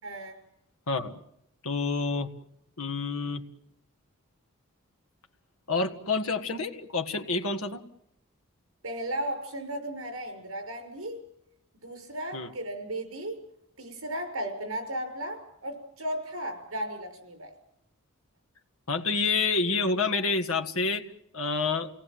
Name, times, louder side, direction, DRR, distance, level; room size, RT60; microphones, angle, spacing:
voice 1, 0.0-0.4 8.8-11.2 11.8-13.4 13.8-17.5, right 1 dB, 75° right, 6 dB, 5.9 m, -35 dB
voice 2, 0.9-1.2 1.6-2.3 2.8-3.4 5.7-7.8 12.3-12.5 18.9-21.0 21.3-21.9, left 4 dB, 90° left, 5 dB, 1.8 m, -28 dB
29.0 x 18.5 x 7.7 m, 0.77 s
head